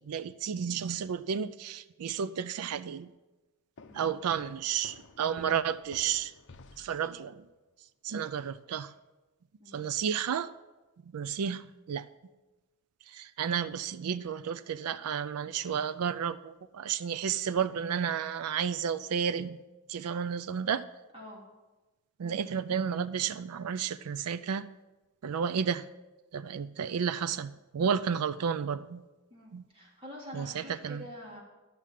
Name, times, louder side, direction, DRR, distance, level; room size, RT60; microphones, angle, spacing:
voice 1, 0.0-3.1 3.9-6.3 6.8-7.4 8.0-8.9 9.7-10.5 11.1-12.0 13.1-19.6 19.9-20.8 22.2-24.6 25.2-25.8 26.3-29.0 29.5-29.6 30.3-31.0, right 7 dB, 80° right, 14 dB, 0.4 m, -32 dB
sound 1, 3.8-7.5, left 3 dB, 60° left, 0.7 m, -53 dB
voice 2, 3.9-4.4 9.6-9.9 21.1-21.5 29.3-31.4, left 1 dB, 25° right, -3 dB, 3.0 m, -47 dB
11.5 x 6.1 x 7.4 m, 1.1 s
head